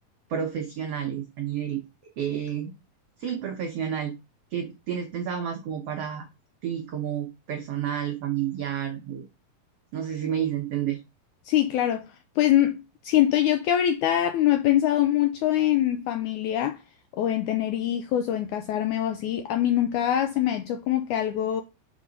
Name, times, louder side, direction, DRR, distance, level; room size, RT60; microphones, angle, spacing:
voice 1, 0.3-1.8 2.2-2.7 3.2-4.2 4.5-6.3 6.6-9.2 9.9-11.0, right 9 dB, 85° right, 1.3 m, -30 dB
voice 2, 11.5-12.1 12.4-12.8 13.0-16.8 17.2-21.6, left 12 dB, 85° left, 1.7 m, -23 dB
5.4 x 4.7 x 5.2 m
omnidirectional pair, 4.1 m